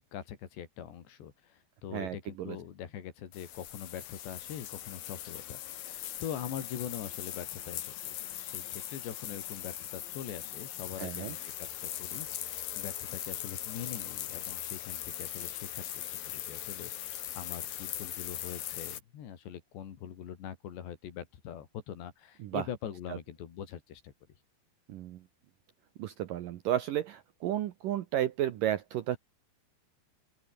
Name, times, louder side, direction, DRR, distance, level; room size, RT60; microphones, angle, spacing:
voice 1, 0.0-8.1 8.4-24.1, left 9 dB, 75° left, 4.9 m, -43 dB
voice 2, 1.9-2.6 11.0-11.4 22.4-22.7 24.9-25.2 26.0-29.2, right 12 dB, 70° right, 2.1 m, -33 dB
sound 1, 3.3-19.0, left 12 dB, 60° left, 3.2 m, -40 dB
open air
omnidirectional pair, 5.1 m